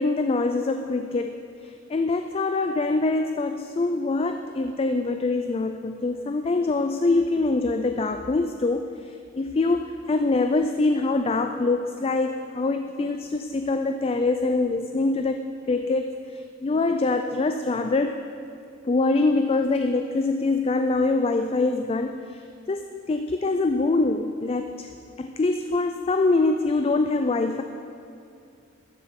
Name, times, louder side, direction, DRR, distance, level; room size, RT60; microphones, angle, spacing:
voice 1, 0.0-1.4 1.6-18.2 18.8-24.9 25.2-27.6, left 3 dB, 30° left, 7 dB, 0.3 m, -24 dB
13.0 x 7.7 x 5.9 m, 2.5 s
head